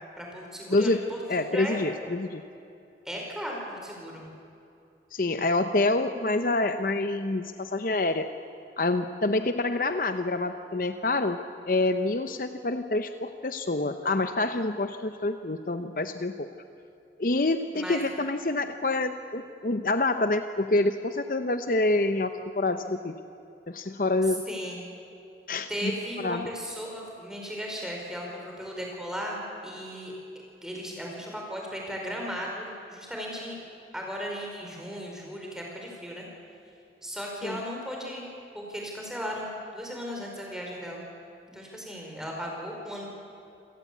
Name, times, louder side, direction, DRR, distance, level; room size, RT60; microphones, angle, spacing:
voice 1, 0.2-1.8 3.0-4.3 17.4-17.5 17.7-18.0 24.3-24.8 25.7-30.1 30.6-33.5 33.9-36.3 37.0-38.3 38.5-41.0 41.5-43.0, equal, 5° right, -1 dB, 4.7 m, -36 dB
voice 2, 0.7-1.0 1.3-2.4 5.1-8.3 8.8-11.4 11.7-16.5 17.2-23.2 23.7-24.4 25.5-26.5 37.4-37.6, left 2 dB, 50° left, 9 dB, 0.8 m, -27 dB
27.0 x 17.5 x 8.5 m, 2.7 s
head